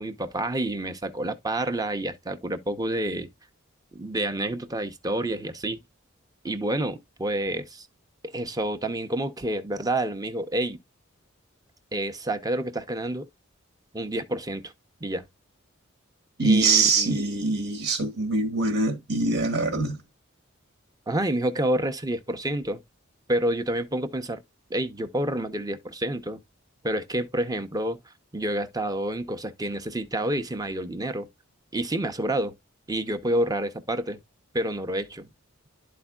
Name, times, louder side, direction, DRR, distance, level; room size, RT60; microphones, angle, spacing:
voice 1, 0.0-3.3 3.9-5.8 6.4-7.9 8.3-10.8 11.9-13.3 13.9-14.7 15.0-15.3 16.4-17.2 21.1-22.8 23.3-24.4 24.7-26.4 26.8-31.3 31.7-32.6 32.9-34.2 34.5-35.3, right 1 dB, 20° right, 0.8 m, -28 dB
voice 2, 16.4-20.0, right 3 dB, 70° right, 1.5 m, -23 dB
12.0 x 4.4 x 2.3 m
head